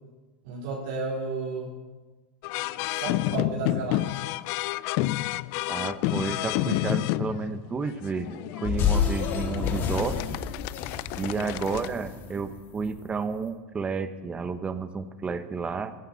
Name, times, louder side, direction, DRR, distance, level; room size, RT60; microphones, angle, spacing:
voice 1, 0.4-1.8 2.5-4.3 11.2-11.4, right 3 dB, 70° right, -5 dB, 4.2 m, -34 dB
sound 1, 2.4-11.9, left 17 dB, 55° left, 0.4 m, -30 dB
voice 2, 5.7-10.2 11.2-16.0, right 5 dB, 20° right, 10 dB, 1.2 m, -31 dB
sound 2, 8.6-13.0, left 7 dB, 40° left, 2.6 m, -29 dB
18.0 x 15.0 x 4.2 m, 1.3 s
hypercardioid pair, 110°, 6 cm